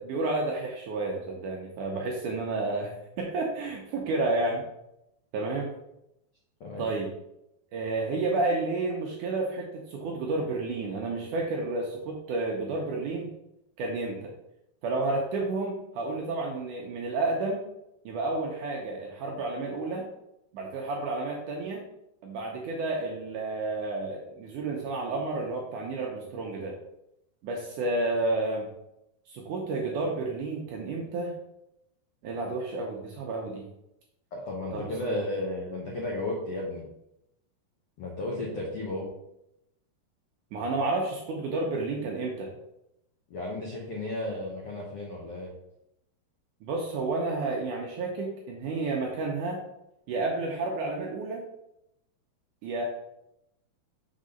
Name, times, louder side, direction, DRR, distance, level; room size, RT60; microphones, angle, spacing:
voice 1, 0.0-4.6 5.3-5.7 6.8-7.1 7.7-13.3 13.8-14.3 14.8-17.6 18.1-20.1 20.5-21.8 22.2-26.8 27.4-28.7 29.3-31.4 32.2-33.7 34.7-35.2 40.5-42.5 46.6-49.6 50.1-51.4 52.6-52.8, right 2 dB, 75° right, -1 dB, 1.9 m, -31 dB
voice 2, 6.6-6.9 34.3-36.9 38.0-39.1 43.3-45.5, left 1 dB, 85° left, -3 dB, 1.3 m, -33 dB
6.4 x 4.0 x 5.1 m, 0.84 s
omnidirectional pair, 4.5 m